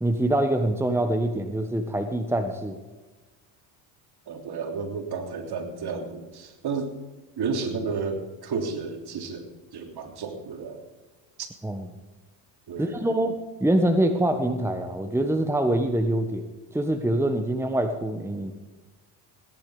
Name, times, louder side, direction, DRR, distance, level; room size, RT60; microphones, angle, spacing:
voice 1, 0.0-2.8 11.6-11.9 12.8-16.4 16.7-18.5, right 1 dB, 5° right, 6 dB, 1.4 m, -25 dB
voice 2, 4.3-6.9 7.4-10.8 11.4-11.5 12.7-13.2, right 5 dB, 50° right, 4 dB, 3.4 m, -32 dB
18.0 x 11.0 x 5.1 m, 1.2 s
supercardioid pair, 80°, 49 cm